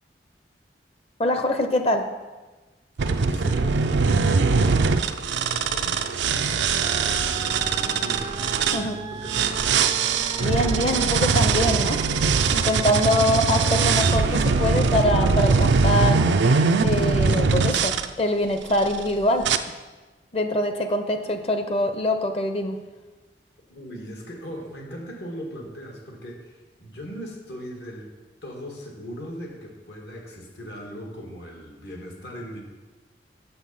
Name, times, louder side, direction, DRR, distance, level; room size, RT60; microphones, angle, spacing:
voice 1, 1.2-2.1 8.7-9.0 10.4-12.0 12.5-16.3 16.8-19.5 20.3-22.8, left 1 dB, 35° left, 7 dB, 0.7 m, -24 dB
sound 1, 3.0-8.8 9.3-18.1 18.7-19.0 19.4-19.6, right 4 dB, 85° right, 0.5 m, -22 dB
voice 2, 3.1-4.8 5.2-8.8 9.1-9.6 23.7-28.1 28.4-32.6, equal, 75° left, 0 dB, 1.9 m, -39 dB
sound 2, 6.8-15.4, right 4 dB, 25° right, 0.3 m, -36 dB
8.0 x 6.8 x 5.6 m, 1.2 s
head